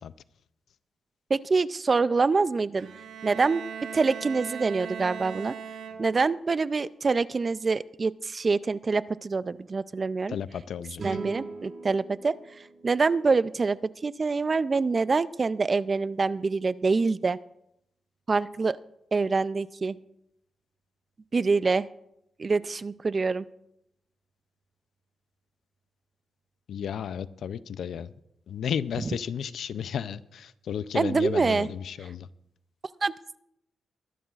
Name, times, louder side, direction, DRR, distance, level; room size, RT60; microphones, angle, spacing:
voice 1, 1.3-2.9 3.2-3.6 3.9-5.5 6.0-10.4 11.0-12.3 12.8-13.8 14.0-17.4 18.3-18.8 19.1-20.0 21.3-21.9 22.4-23.4 30.9-31.7 33.0-33.1, right 4 dB, 30° right, 17 dB, 0.3 m, -25 dB
Bowed string instrument, 2.7-6.4, right 7 dB, 85° right, 1.2 m, -39 dB
voice 2, 10.3-11.0 26.7-28.1 28.5-32.3, left 8 dB, 75° left, 16 dB, 0.4 m, -33 dB
sound 1, 11.0-14.3, right 3 dB, 50° right, 2.0 m, -41 dB
22.0 x 11.0 x 2.4 m, 0.81 s
wide cardioid pair, 135°, 0 cm